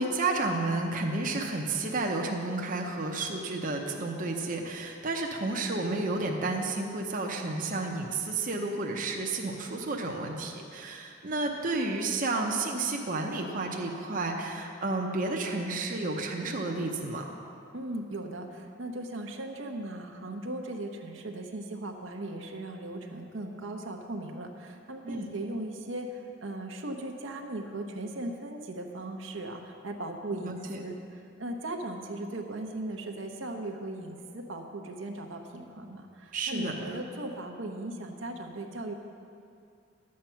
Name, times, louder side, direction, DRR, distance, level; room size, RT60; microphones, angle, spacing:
voice 1, 0.0-17.3 25.0-25.3 30.4-30.8 36.3-36.9, right 2 dB, 45° right, 1 dB, 0.8 m, -31 dB
voice 2, 17.7-31.0 31.4-38.9, right 1 dB, 70° right, 2 dB, 0.8 m, -38 dB
11.0 x 7.6 x 5.7 m, 2.4 s
head